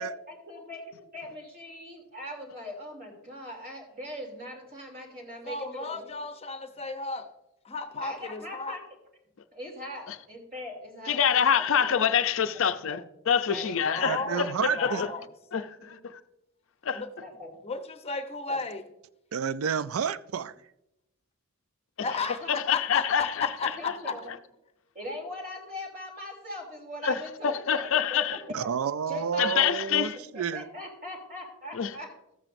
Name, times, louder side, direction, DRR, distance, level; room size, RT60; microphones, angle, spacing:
voice 1, 0.0-6.2 8.0-8.8 9.5-11.2 11.5-12.0 12.7-13.0 13.5-13.8 14.1-14.2 15.8-15.9 17.2-17.5 18.5-18.6 22.1-22.5 23.8-24.3 24.9-28.7 29.1-29.9 30.3-32.1, left 1 dB, 45° right, 2.9 m, -41 dB
voice 2, 5.5-7.3 7.6-8.8 13.9-15.2 16.9-17.1 17.6-18.8 22.0-24.1, left 4 dB, 30° left, 0.8 m, -34 dB
voice 3, 11.1-15.1 15.5-16.2 16.8-17.0 22.0-22.2 22.5-23.9 27.0-28.4 29.4-30.2 31.7-31.9, left 7 dB, 60° left, 0.5 m, -26 dB
voice 4, 14.0-15.0 19.3-20.5 28.5-30.6, right 7 dB, 70° right, 0.4 m, -30 dB
13.5 x 8.8 x 2.6 m
head